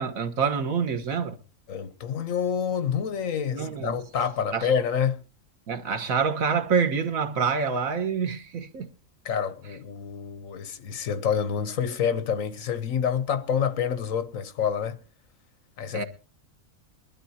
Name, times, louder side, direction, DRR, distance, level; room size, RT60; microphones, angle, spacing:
voice 1, 0.0-1.4 3.5-4.0 4.5-4.7 5.7-8.9 15.9-16.0, right 6 dB, 85° right, 1.7 m, -26 dB
voice 2, 1.7-5.2 9.2-15.0 15.8-16.0, left 7 dB, 75° left, 1.4 m, -27 dB
22.5 x 12.0 x 2.8 m
omnidirectional pair, 1.4 m